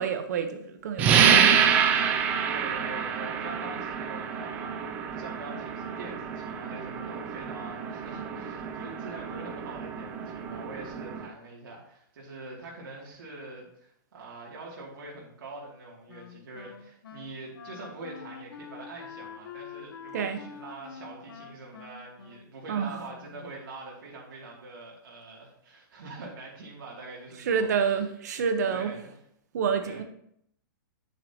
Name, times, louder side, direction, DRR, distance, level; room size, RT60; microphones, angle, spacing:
voice 1, 0.0-1.7 20.1-20.4 22.7-23.0 27.4-28.9 29.5-30.0, right 6 dB, 50° right, 8 dB, 1.1 m, -28 dB
sound 1, 1.0-11.3, right 7 dB, 15° right, 0.4 m, -27 dB
voice 2, 2.5-28.1 28.7-29.1 29.8-30.0, right 2 dB, 75° right, -4 dB, 2.8 m, -44 dB
Wind instrument woodwind instrument, 16.1-23.5, left 6 dB, 85° left, 1.1 m, -46 dB
9.0 x 8.0 x 3.0 m, 0.71 s
hypercardioid pair, 175°, 12 cm